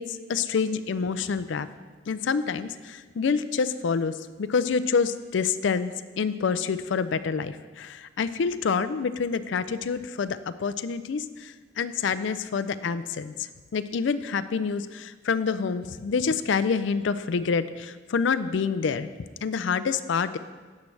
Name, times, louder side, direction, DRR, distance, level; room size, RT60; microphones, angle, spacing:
voice 1, 0.0-1.7 2.1-13.3 13.7-19.1 19.4-20.4, left 5 dB, 65° left, 13 dB, 0.4 m, -27 dB
12.0 x 8.3 x 3.3 m, 1.4 s
head